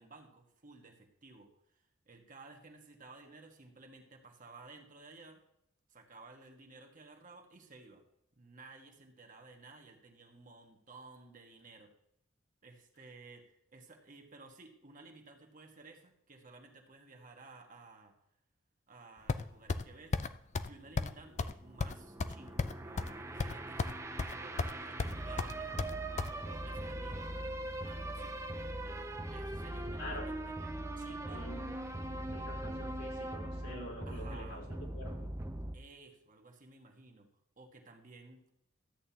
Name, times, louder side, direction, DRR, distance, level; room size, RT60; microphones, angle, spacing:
voice 1, 0.0-5.4 5.9-8.0 8.4-11.9 12.6-18.1 18.9-20.2 20.7-25.8 26.3-27.2 27.8-28.4 28.7-28.8 29.3-30.6 31.0-31.5 34.1-34.6 35.7-37.3 37.6-38.5, right 3 dB, 40° right, 3 dB, 1.5 m, -55 dB
sound 1, 19.3-19.8 20.1-20.3 20.5-20.7 21.0-21.1 21.4-21.5 21.8-23.1 23.4-23.9 24.2-24.7 25.0-26.3, left 3 dB, 35° left, 0.4 m, -34 dB
sound 2, 20.7-35.8, right 1 dB, 15° right, 0.6 m, -41 dB
voice 2, 30.0-30.3 31.0-34.6 34.9-35.3, left 1 dB, 85° left, -3 dB, 4.0 m, -47 dB
13.0 x 8.8 x 2.9 m, 0.75 s
head